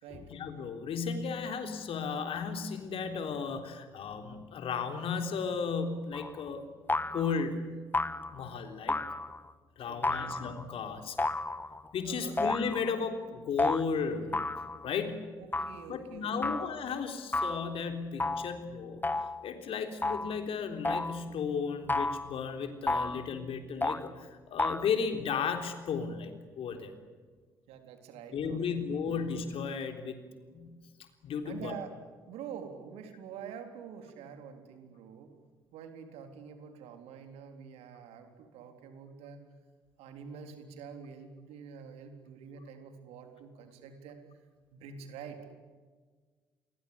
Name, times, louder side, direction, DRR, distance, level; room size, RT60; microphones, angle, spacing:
voice 1, 0.3-6.7 6.9-7.6 8.3-9.0 9.8-11.2 11.9-14.4 14.8-15.3 15.9-26.9 28.3-30.2 30.5-30.8 31.2-31.7, left 5 dB, 55° left, 7 dB, 3.6 m, -34 dB
sound 1, 6.1-6.4 6.9-7.4 7.9-8.4 8.9-9.5 10.0-10.7 11.2-11.9 12.4-12.9 13.6-13.8 14.3-14.9 15.5-15.8 16.4-16.7 17.3-17.7 18.2-18.6 19.0-19.4 20.0-20.4 20.8-21.2 21.9-22.4 22.9-23.3 23.8-24.1 24.6-24.9, left 2 dB, 15° left, 1.4 m, -32 dB
voice 2, 9.9-10.4 12.0-12.4 15.4-16.6 27.7-29.2 31.4-31.9 32.3-35.3 35.7-39.4 40.0-44.2 44.7-45.4, right 7 dB, 70° right, 6 dB, 3.7 m, -47 dB
28.0 x 22.5 x 8.5 m, 1.5 s
figure-of-eight pair, 45°, 11 cm